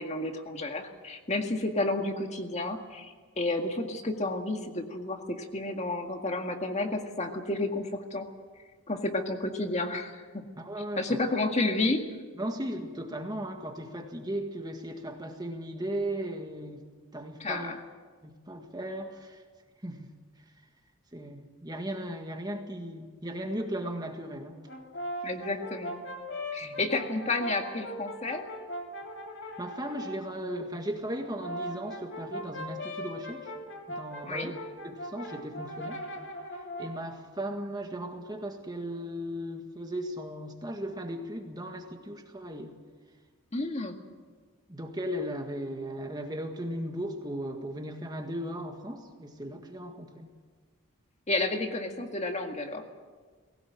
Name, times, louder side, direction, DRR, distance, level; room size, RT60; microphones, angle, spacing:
voice 1, 0.0-8.3 8.9-10.4 11.0-12.0 17.4-17.8 25.2-26.0 26.5-28.4 34.2-34.5 43.5-44.0 51.3-52.8, left 2 dB, 30° left, 4 dB, 1.9 m, -31 dB
voice 2, 10.6-11.2 12.4-16.8 17.1-17.7 18.2-19.4 19.8-20.1 21.1-24.6 26.6-26.8 29.6-33.5 33.9-34.5 34.8-36.0 36.8-42.7 44.7-50.3, right 1 dB, 20° right, 3 dB, 1.7 m, -36 dB
Brass instrument, 24.7-30.2 31.2-37.0, equal, 60° left, 2.8 m, -40 dB
20.0 x 18.0 x 9.0 m, 1.5 s
head